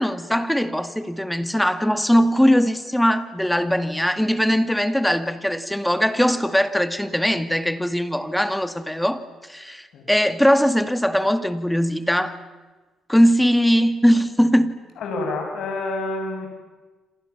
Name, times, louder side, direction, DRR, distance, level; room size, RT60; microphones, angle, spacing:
voice 1, 0.0-9.2 9.5-12.4 13.1-14.7, equal, 5° left, 2.1 m, -20 dB
voice 2, 15.0-16.5, left 2 dB, 75° left, 7.6 m, -28 dB
28.5 x 27.0 x 7.3 m
cardioid pair, 90°, 0 cm